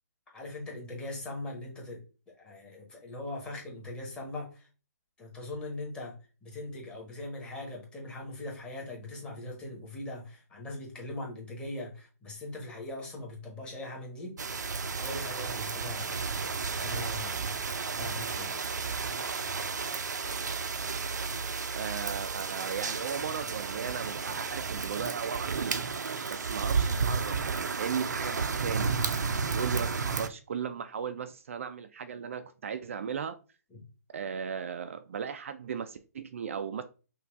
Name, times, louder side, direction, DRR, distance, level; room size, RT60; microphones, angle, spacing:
voice 1, 0.3-2.0 2.4-4.7 5.2-14.4 15.0-16.2 16.8-17.5 17.9-18.7 20.4-20.5 33.7-33.8, left 2 dB, 10° left, 1.2 m, -40 dB
sound 1, 14.4-30.3, right 5 dB, 90° right, 0.6 m, -32 dB
voice 2, 21.7-25.7 26.3-29.0 29.5-33.4 34.1-36.8, right 7 dB, 50° right, 0.4 m, -36 dB
5.8 x 2.4 x 3.4 m
hypercardioid pair, 160°, 9 cm